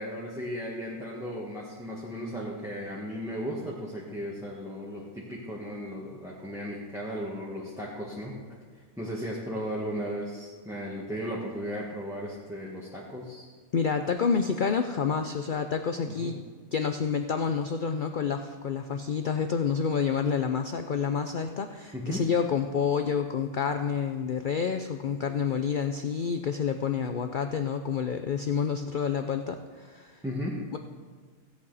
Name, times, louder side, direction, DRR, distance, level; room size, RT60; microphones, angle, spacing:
voice 1, 0.0-8.4 9.0-13.4 16.0-16.3 21.9-22.2 30.2-30.6, equal, ahead, -6 dB, 1.3 m, -35 dB
voice 2, 13.7-16.4 16.7-30.2 30.7-30.8, left 6 dB, 80° left, 6 dB, 0.4 m, -28 dB
16.0 x 8.3 x 4.0 m, 1.5 s
omnidirectional pair, 1.5 m